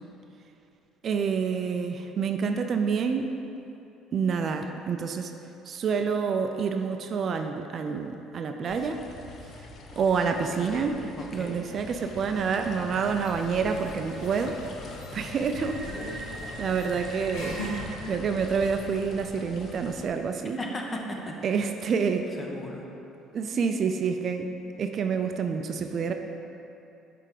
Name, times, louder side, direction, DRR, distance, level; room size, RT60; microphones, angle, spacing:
voice 1, 1.0-3.4 4.1-5.3 5.7-9.0 10.0-11.0 11.3-14.6 15.1-16.3 16.6-17.6 18.1-20.6 21.4-22.3 23.3-24.5 24.8-26.1, right 6 dB, 50° right, 6 dB, 0.3 m, -28 dB
sound 1, 8.7-20.1, left 3 dB, 50° left, 0.6 m, -44 dB
voice 2, 10.4-11.6 20.6-21.3 22.4-22.9, left 1 dB, 25° left, 1 dB, 0.9 m, -37 dB
sound 2, 12.6-17.8, right 1 dB, 80° left, 1.5 m, -39 dB
7.3 x 3.4 x 4.9 m, 2.9 s
supercardioid pair, 95°, 0 cm